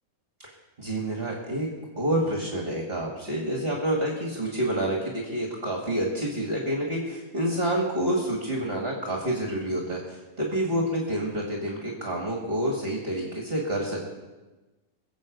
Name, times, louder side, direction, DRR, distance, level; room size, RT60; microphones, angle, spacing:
voice 1, 0.8-1.7 2.0-14.0, right 1 dB, 45° right, -1 dB, 2.3 m, -28 dB
21.5 x 7.8 x 5.2 m, 1.1 s
omnidirectional pair, 1.5 m